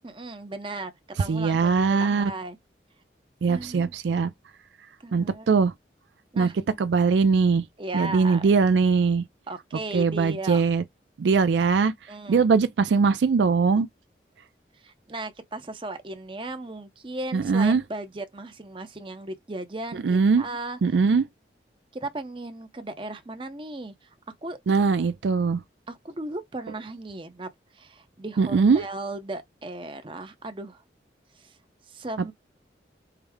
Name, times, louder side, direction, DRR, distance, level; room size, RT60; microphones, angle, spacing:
voice 1, 0.0-2.6 3.5-3.9 5.0-5.6 6.3-6.6 7.8-8.5 9.5-10.6 12.1-12.5 14.8-20.8 21.9-24.1 24.4-24.6 25.9-30.8 31.3-31.6 31.9-32.3, right 2 dB, 30° right, 0.7 m, -36 dB
voice 2, 1.3-2.3 3.4-4.3 5.1-5.7 6.4-6.5 6.8-7.6 7.9-9.2 9.9-10.8 11.2-11.9 12.3-13.9 17.3-17.8 20.0-20.4 20.8-21.2 24.7-25.6 28.4-28.8, right 5 dB, 80° right, 0.4 m, -21 dB
4.7 x 2.1 x 3.5 m
head